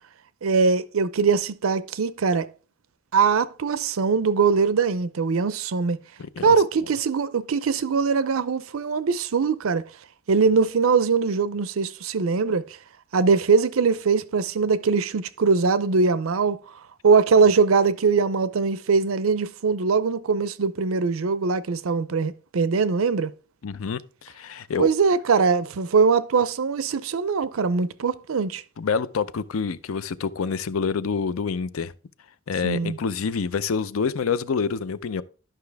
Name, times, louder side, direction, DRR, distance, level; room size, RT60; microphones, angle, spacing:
voice 1, 0.4-2.5 3.1-6.0 6.4-9.8 10.3-12.7 13.1-16.6 17.0-23.3 24.8-28.6 32.6-33.0, right 5 dB, 80° right, 0.5 m, -21 dB
voice 2, 6.2-6.5 23.6-24.9 28.8-31.9 32.5-35.2, left 5 dB, 85° left, 0.5 m, -27 dB
11.5 x 5.8 x 3.4 m
head